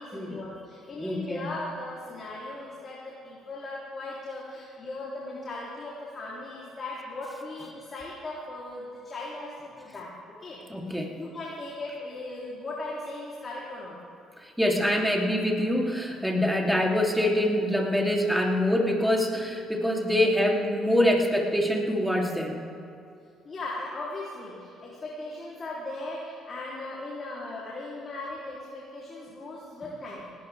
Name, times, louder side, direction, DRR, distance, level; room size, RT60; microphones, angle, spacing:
voice 1, 0.0-10.6 10.9-14.0 23.5-30.4, left 2 dB, 40° left, -5 dB, 3.6 m, -38 dB
voice 2, 1.0-1.5 10.7-11.2 14.6-22.7, left 1 dB, ahead, -1 dB, 3.2 m, -25 dB
18.5 x 18.0 x 3.6 m, 2.6 s
hypercardioid pair, 50°, 0 cm